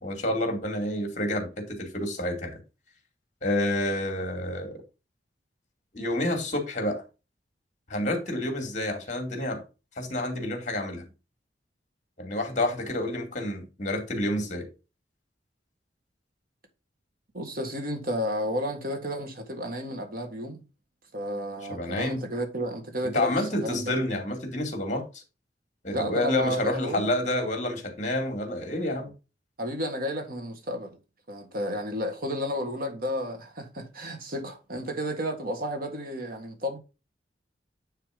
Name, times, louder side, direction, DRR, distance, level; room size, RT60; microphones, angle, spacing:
voice 1, 0.0-2.6 3.4-4.8 5.9-7.0 7.9-9.6 10.0-11.1 12.2-14.7 21.7-22.2 23.0-25.2 25.8-29.1, left 1 dB, 45° left, 2.4 m, -29 dB
voice 2, 17.3-20.6 21.1-23.3 23.6-23.9 25.9-27.1 29.6-31.0 31.3-36.8, equal, 55° right, 1.8 m, -32 dB
9.4 x 3.5 x 5.0 m
head